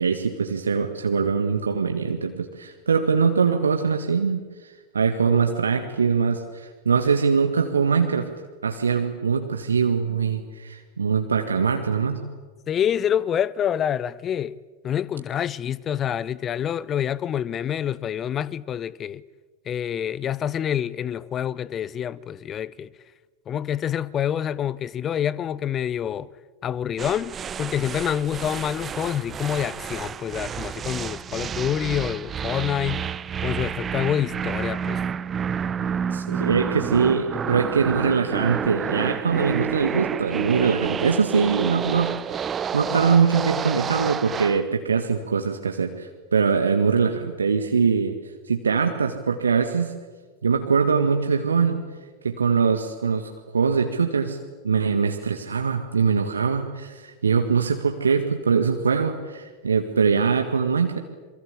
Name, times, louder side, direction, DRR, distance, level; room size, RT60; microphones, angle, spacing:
voice 1, 0.0-8.3 8.6-12.2 36.1-48.2 48.5-49.9 50.4-51.8 52.2-54.4 54.6-61.0, right 5 dB, 70° right, 1.9 m, -22 dB
voice 2, 12.7-14.6 14.8-19.2 19.7-22.9 23.5-26.3 26.6-33.1 33.4-35.0, left 9 dB, 25° left, 0.8 m, -27 dB
sound 1, 27.0-44.7, right 7 dB, 25° right, 0.7 m, -29 dB
27.5 x 23.5 x 8.3 m
figure-of-eight pair, 90°, 0 cm